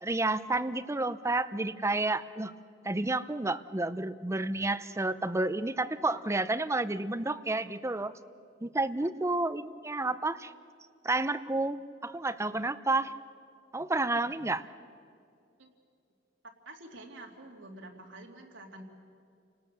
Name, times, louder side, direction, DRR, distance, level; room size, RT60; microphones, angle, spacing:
voice 1, 0.0-2.5 2.8-8.1 8.6-10.5 11.0-13.1 13.7-14.6, right 2 dB, 15° right, 12 dB, 0.6 m, -30 dB
voice 2, 16.6-18.8, right 2 dB, 85° right, 1 dB, 2.8 m, -48 dB
29.5 x 18.5 x 6.9 m, 2.4 s
head